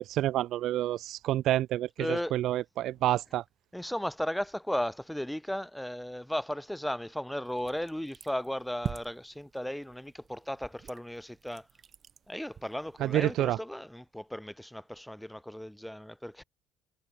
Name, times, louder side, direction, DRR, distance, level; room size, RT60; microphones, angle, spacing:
voice 1, 0.0-3.4 13.0-13.6, right 13 dB, 60° right, 0.4 m, -28 dB
voice 2, 2.0-2.4 3.7-11.7 12.3-16.4, equal, ahead, 1.0 m, -35 dB
sound 1, 7.4-13.3, right 7 dB, 35° right, 2.0 m, -45 dB
cardioid pair, 130°, 0 cm